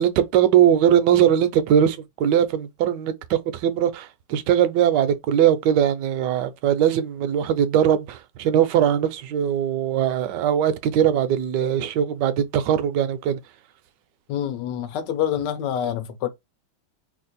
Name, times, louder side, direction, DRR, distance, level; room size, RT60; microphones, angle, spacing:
voice 1, 0.0-13.4, right 9 dB, 75° right, 1.1 m, -20 dB
voice 2, 14.3-16.3, left 10 dB, 75° left, 1.1 m, -26 dB
3.3 x 2.4 x 3.9 m
omnidirectional pair, 2.2 m